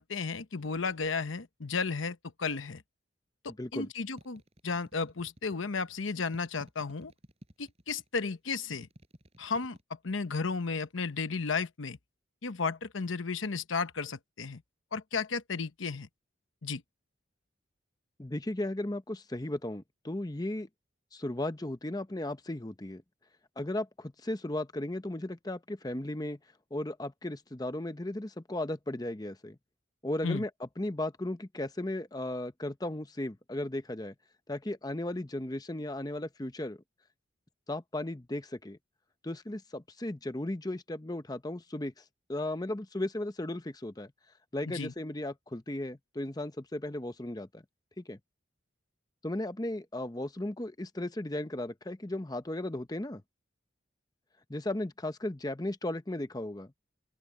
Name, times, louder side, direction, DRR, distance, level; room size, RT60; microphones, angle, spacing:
voice 1, 0.0-2.8 3.4-7.1 7.6-8.9 9.4-9.8 10.0-12.0 12.4-14.6 14.9-16.1 16.6-16.8 30.2-30.4 44.7-44.9, left 4 dB, 85° left, 0.9 m, -34 dB
voice 2, 3.6-3.9 18.2-20.7 21.1-23.0 23.6-26.4 26.7-29.6 30.0-30.5 30.8-34.1 34.5-36.8 37.7-38.8 39.2-41.9 42.3-44.1 44.5-47.6 48.0-48.2 49.2-53.2 54.5-56.7, left 1 dB, 20° left, 0.8 m, -35 dB
pasoso cucaracha, 4.2-5.7 6.3-8.1 8.7-9.8, equal, 30° right, 7.0 m, -54 dB
open air
head